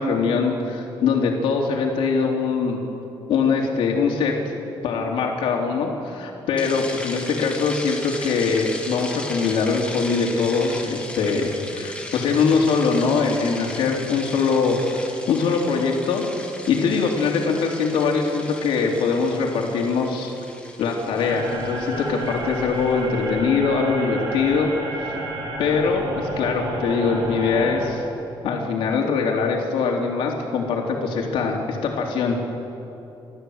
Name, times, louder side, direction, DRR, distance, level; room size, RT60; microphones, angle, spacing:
voice 1, 0.0-2.8 3.3-4.3 4.8-16.2 16.7-20.3 20.8-24.7 25.6-28.0 28.4-32.4, left 5 dB, 90° left, 0 dB, 3.2 m, -22 dB
sound 1, 6.6-22.8, left 2 dB, 10° left, 2.2 m, -37 dB
sound 2, 21.2-27.9, right 2 dB, 65° right, 5.7 m, -31 dB
29.0 x 14.0 x 7.9 m, 2.9 s
cardioid pair, 175°, 9 cm